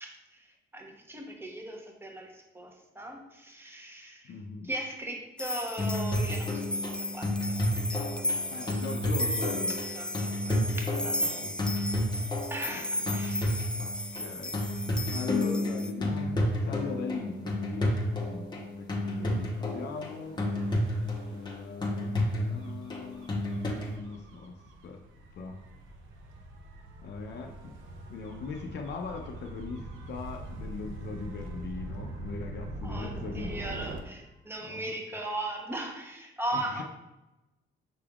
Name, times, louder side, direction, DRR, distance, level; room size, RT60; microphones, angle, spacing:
voice 1, 0.0-4.3 4.6-6.7 7.1-7.6 7.9-8.5 9.9-11.4 12.5-13.6 32.8-36.8, right 1 dB, 10° right, 1 dB, 0.9 m, -38 dB
voice 2, 4.2-4.7 8.5-9.8 10.4-11.6 12.7-12.9 13.8-14.8 15.1-17.9 18.2-20.4 21.3-23.4 23.7-25.0 25.3-25.6 27.0-27.7 28.1-33.6 34.6-35.0 36.5-36.8, left 4 dB, 60° left, 2 dB, 0.6 m, -40 dB
sound 1, 5.4-15.9, left 1 dB, 5° left, 0.4 m, -35 dB
sound 2, 5.8-23.9, left 1 dB, 20° left, 0.9 m, -31 dB
Gull seagull / Waves surf / Siren, 19.3-34.0, right 2 dB, 80° right, 0.6 m, -43 dB
5.9 x 3.4 x 2.4 m, 1.0 s
cardioid pair, 90°, 20 cm